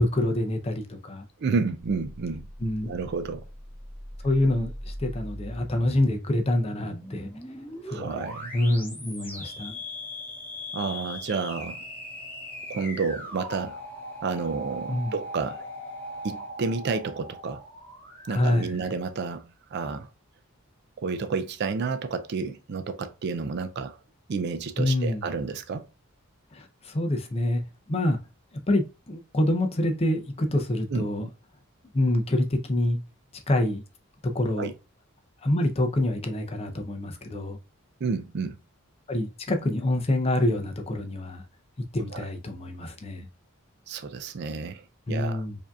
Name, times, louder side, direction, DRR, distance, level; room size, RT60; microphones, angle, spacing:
voice 1, 0.0-1.2 2.6-2.9 4.2-7.3 7.8-8.3 8.5-9.8 14.9-15.1 18.3-18.8 24.8-25.2 26.5-27.6 27.9-28.2 28.7-31.3 31.9-33.0 33.5-33.8 34.2-34.7 35.4-37.6 39.1-41.4 41.9-43.3 45.1-45.6, left 1 dB, 25° left, 0.5 m, -26 dB
voice 2, 1.4-2.5 2.8-3.5 7.9-8.5 10.7-11.9 12.7-13.8 14.2-15.7 16.2-17.6 18.3-20.1 21.0-24.0 24.3-25.9 30.9-31.3 34.6-34.7 38.0-38.6 42.1-42.3 43.9-45.4, right 4 dB, 50° right, 0.4 m, -30 dB
sound 1, 1.8-18.9, left 1 dB, 10° left, 1.2 m, -40 dB
4.7 x 2.7 x 2.3 m
head